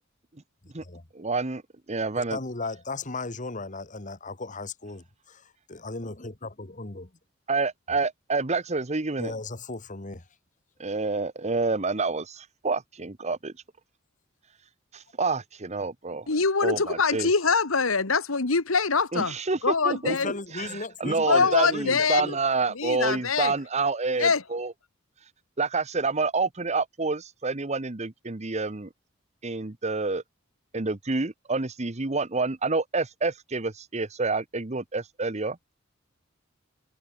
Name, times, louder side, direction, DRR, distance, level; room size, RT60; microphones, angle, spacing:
voice 1, 1.1-1.6 1.9-2.4 7.5-9.3 10.8-13.5 14.9-16.3 16.6-17.3 19.1-20.7 21.0-24.7 25.6-28.9 29.4-30.2 30.7-35.6, right 3 dB, 35° right, 1.1 m, -28 dB
voice 2, 2.2-7.1 9.2-10.3 20.1-22.3, left 3 dB, 40° left, 1.8 m, -36 dB
voice 3, 16.3-19.4 19.6-20.4 21.3-22.4 22.7-23.5 24.2-24.4, left 4 dB, 85° left, 1.6 m, -24 dB
head